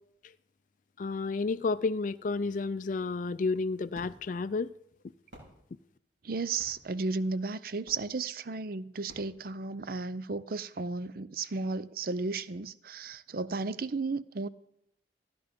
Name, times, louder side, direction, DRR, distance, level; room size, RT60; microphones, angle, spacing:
voice 1, 1.0-4.7, left 4 dB, 45° left, 0.4 m, -31 dB
sound 1, 3.9-10.2, equal, 90° right, 5.1 m, -57 dB
voice 2, 6.2-14.5, right 3 dB, 55° right, 0.5 m, -34 dB
15.0 x 10.5 x 5.2 m
head